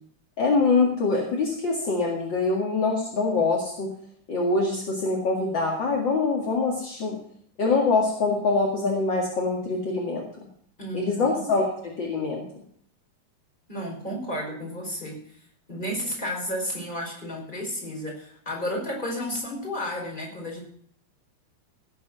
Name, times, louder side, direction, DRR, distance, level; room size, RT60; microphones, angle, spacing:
voice 1, 0.4-3.9 4.3-7.2 7.6-10.2 10.9-11.7 12.0-12.4, left 3 dB, 40° left, -1 dB, 1.8 m, -24 dB
voice 2, 10.8-11.5 13.7-15.4 15.7-20.6, equal, 10° left, -2 dB, 4.9 m, -32 dB
17.0 x 7.2 x 6.8 m, 0.63 s
omnidirectional pair, 4.6 m